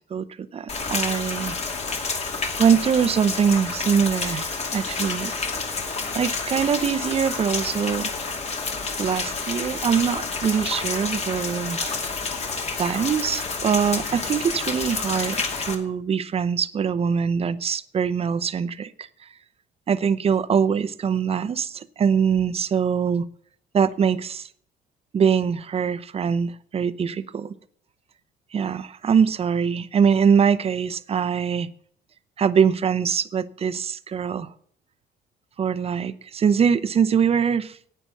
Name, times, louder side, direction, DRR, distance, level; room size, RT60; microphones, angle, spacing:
voice 1, 0.5-1.6 2.6-5.3 6.1-8.1 9.0-12.0 12.8-19.1 19.9-23.3 23.7-24.5 25.1-27.5 28.5-31.7 32.4-34.5 35.6-37.8, right 7 dB, 35° right, 12 dB, 0.8 m, -23 dB
Rain, 0.7-15.7, left 4 dB, 40° left, 2.5 m, -29 dB
11.0 x 8.8 x 6.6 m, 0.62 s
cardioid pair, 110°, 17 cm